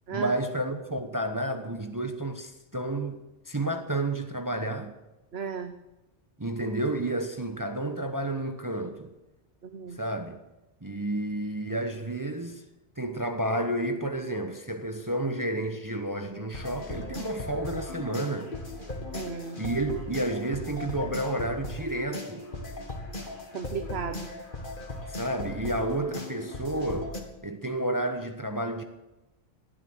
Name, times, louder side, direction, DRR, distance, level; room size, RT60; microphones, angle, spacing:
voice 1, 0.1-3.2 3.5-4.9 6.4-9.1 9.9-10.4 10.8-12.6 13.0-18.5 19.6-22.4 25.1-27.1 27.4-28.8, right 1 dB, 20° right, 1.0 m, -31 dB
voice 2, 5.3-5.8 9.6-10.0 19.1-19.6 23.5-24.3, right 6 dB, 65° right, 1.2 m, -35 dB
sound 1, 16.5-27.2, left 2 dB, 50° left, 2.3 m, -37 dB
17.5 x 12.0 x 6.4 m
omnidirectional pair, 1.1 m